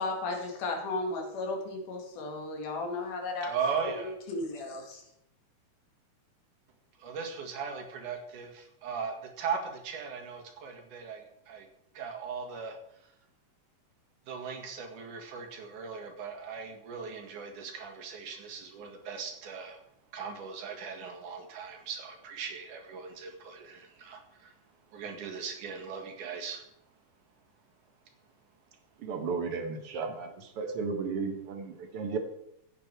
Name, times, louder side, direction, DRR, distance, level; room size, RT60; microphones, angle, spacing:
voice 1, 0.0-3.5 3.8-5.0, left 2 dB, 85° left, 3 dB, 3.6 m, -35 dB
voice 2, 3.4-4.2 7.0-11.7 11.9-12.8 14.3-19.8 20.1-24.5 24.9-26.6, right 6 dB, 75° right, 3 dB, 3.3 m, -38 dB
voice 3, 29.0-32.2, right 4 dB, 55° right, 6 dB, 2.0 m, -34 dB
15.0 x 8.5 x 4.6 m, 0.78 s
omnidirectional pair, 3.5 m